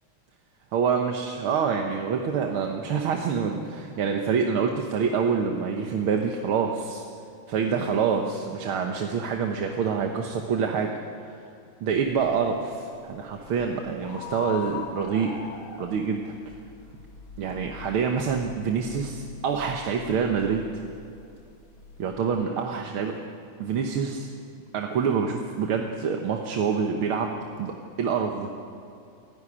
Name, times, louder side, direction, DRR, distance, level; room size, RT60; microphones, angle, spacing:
voice 1, 0.7-7.1 7.5-10.9 11.3-11.4 11.8-15.3 15.8-16.3 17.4-20.6 22.0-23.1 23.6-24.3 24.7-27.3 27.6-28.5, right 6 dB, 80° right, 3 dB, 2.0 m, -26 dB
sound 1, 11.9-22.1, left 7 dB, 70° left, 3.5 m, -43 dB
27.0 x 11.5 x 10.0 m, 2.5 s
omnidirectional pair, 2.3 m